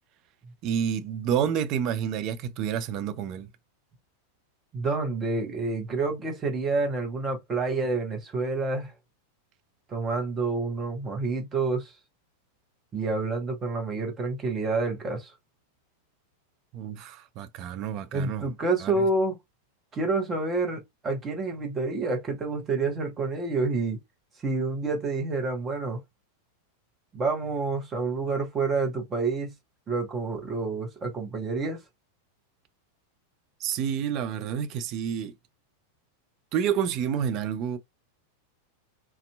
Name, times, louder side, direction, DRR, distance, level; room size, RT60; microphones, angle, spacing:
voice 1, 0.6-3.5 16.7-18.4 18.8-19.0 33.6-35.3 36.5-37.8, right 8 dB, 40° right, 0.4 m, -29 dB
voice 2, 4.7-8.9 9.9-11.9 12.9-15.3 18.1-19.4 19.9-24.0 24.4-26.0 27.1-29.5 29.9-31.8, right 3 dB, 20° right, 0.9 m, -28 dB
2.6 x 2.2 x 2.2 m
figure-of-eight pair, 90°, 0 cm